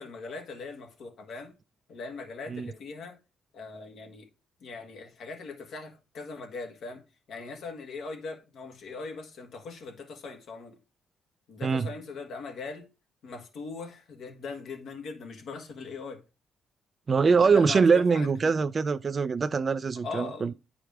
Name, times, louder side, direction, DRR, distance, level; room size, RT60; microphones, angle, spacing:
voice 1, 0.0-1.5 1.9-3.2 3.5-4.3 4.6-7.0 7.3-10.8 11.5-12.9 13.2-16.2 17.2-18.5 20.0-20.5, left 4 dB, 70° left, 1.6 m, -40 dB
voice 2, 17.1-20.5, right 5 dB, 40° right, 0.4 m, -23 dB
9.0 x 4.8 x 3.5 m
cardioid pair, 90°, 0 cm